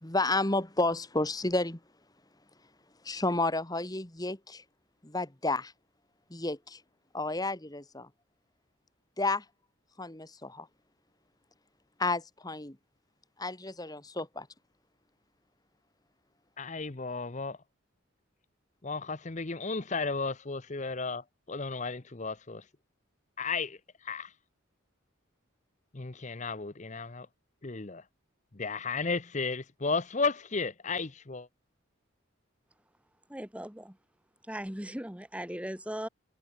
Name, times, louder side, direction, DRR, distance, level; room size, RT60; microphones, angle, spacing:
voice 1, 0.0-1.8 3.0-4.6 5.0-5.7 6.3-6.8 7.1-8.1 9.2-9.4 10.0-10.7 12.0-12.8 13.4-14.5, left 2 dB, 20° left, 1.7 m, -31 dB
voice 2, 16.6-17.6 18.8-22.6 23.4-24.3 25.9-27.3 27.6-28.0 28.5-31.5, left 4 dB, 35° left, 0.9 m, -34 dB
voice 3, 33.3-34.0 34.5-36.1, equal, 5° right, 1.4 m, -38 dB
head